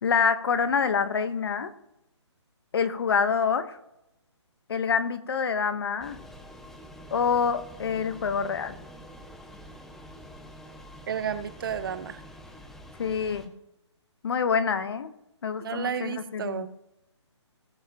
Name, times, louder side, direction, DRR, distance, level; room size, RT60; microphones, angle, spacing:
voice 1, 0.0-1.7 2.7-3.8 4.7-6.2 7.1-8.8 13.0-13.5 14.2-15.1 15.4-16.7, left 6 dB, 55° left, 11 dB, 1.2 m, -26 dB
sound 1, 6.0-13.5, equal, ahead, 0.5 m, -46 dB
voice 2, 11.1-12.2 15.6-16.7, right 7 dB, 50° right, 13 dB, 0.8 m, -32 dB
19.0 x 7.3 x 3.0 m, 0.88 s
hypercardioid pair, 155°, 15 cm